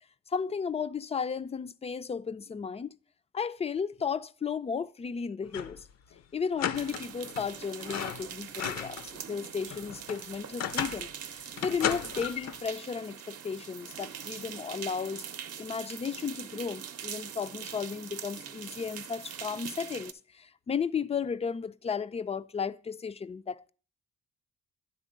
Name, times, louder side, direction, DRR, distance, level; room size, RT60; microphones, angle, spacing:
voice 1, 0.3-3.0 3.3-5.8 6.3-15.2 15.6-23.7, left 6 dB, 20° left, 0.4 m, -34 dB
sound 1, 5.4-5.8 6.1-6.2 6.6-7.5 7.8-9.1 9.4-11.1 11.6-12.6, left 9 dB, 60° left, 0.6 m, -35 dB
sound 2, 6.7-20.1, right 8 dB, 55° right, 0.7 m, -43 dB
9.9 x 3.7 x 6.4 m
cardioid pair, 90°, 30 cm